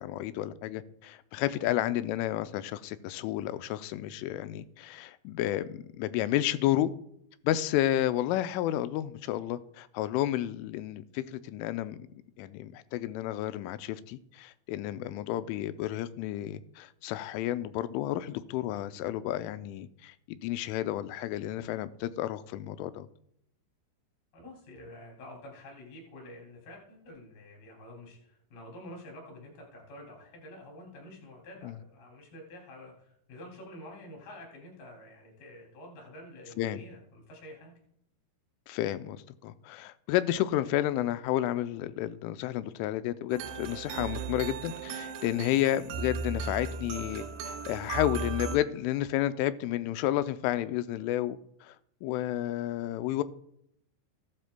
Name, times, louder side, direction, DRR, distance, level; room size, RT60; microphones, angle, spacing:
voice 1, 0.0-6.9 7.4-12.0 12.4-23.1 31.6-31.8 36.6-36.8 38.7-51.8 52.0-53.2, left 13 dB, 90° left, 12 dB, 3.1 m, -31 dB
voice 2, 24.3-37.7, left 1 dB, 55° left, -1 dB, 4.5 m, -48 dB
sound 1, 43.3-48.6, right 5 dB, 80° right, 2.6 m, -36 dB
15.0 x 12.0 x 2.2 m, 0.73 s
omnidirectional pair, 5.5 m